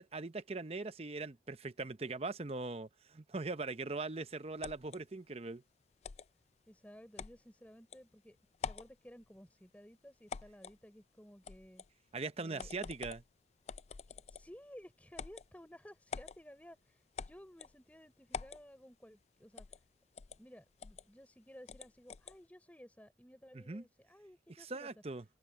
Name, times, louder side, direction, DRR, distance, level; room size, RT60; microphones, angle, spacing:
voice 1, 0.0-5.6 12.1-13.2 23.5-23.8 24.6-25.2, right 3 dB, 35° right, 0.7 m, -41 dB
sound 1, 4.6-5.0 6.0-6.3 7.2-7.4 7.9-8.0 8.5-8.9 10.3-10.8 11.4-11.9 12.6-13.2 13.7-14.5 15.1-15.5 16.1-16.4 17.2-17.7 18.3-18.6 19.6-19.8 20.2-20.4 20.8-21.0 21.7-22.4, left 5 dB, 35° left, 0.3 m, -45 dB
voice 2, 6.7-8.4 8.7-11.8 12.4-12.7 14.1-19.7 20.4-24.9, equal, 10° left, 3.7 m, -56 dB
head